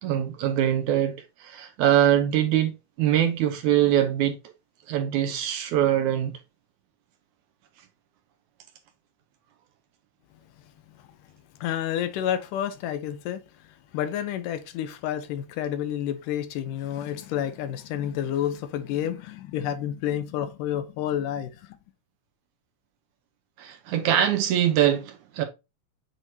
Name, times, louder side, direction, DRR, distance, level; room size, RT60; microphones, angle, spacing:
voice 1, 0.0-2.7 3.0-4.4 4.9-6.4 23.6-25.4, right 11 dB, 75° right, 2.0 m, -23 dB
voice 2, 11.6-21.7, left 10 dB, 80° left, 2.3 m, -30 dB
7.8 x 4.8 x 2.8 m
omnidirectional pair, 3.9 m